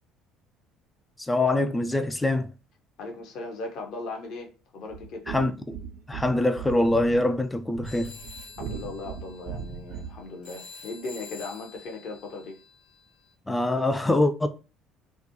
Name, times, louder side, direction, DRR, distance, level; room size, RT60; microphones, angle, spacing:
voice 1, 1.2-2.5 5.3-5.8 6.1-8.1 13.5-14.5, left 2 dB, 10° left, 0.3 m, -24 dB
voice 2, 3.0-5.2 8.6-12.6, left 3 dB, 55° left, 0.6 m, -38 dB
sound 1, 4.9-10.3, right 7 dB, 60° right, 0.4 m, -39 dB
sound 2, 7.8-13.3, left 5 dB, 85° left, 1.2 m, -48 dB
2.4 x 2.1 x 2.7 m
figure-of-eight pair, 55°, 0 cm